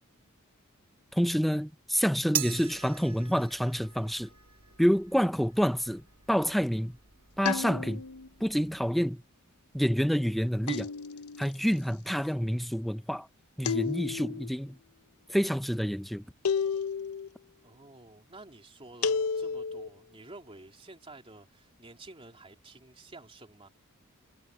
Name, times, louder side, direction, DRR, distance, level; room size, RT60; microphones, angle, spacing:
voice 1, 1.1-4.3 4.8-7.0 7.4-8.0 8.4-9.2 9.7-10.9 11.4-13.3 13.6-14.8 15.3-16.2, equal, ahead, 0.5 m, -28 dB
sound 1, 2.3-8.9, right 11 dB, 75° right, 2.3 m, -41 dB
sound 2, 7.5-8.3 10.7-11.5 13.6-14.5 16.5-17.3 19.0-19.9, left 6 dB, 90° left, 0.6 m, -31 dB
voice 2, 17.6-23.7, right 2 dB, 25° right, 3.3 m, -51 dB
head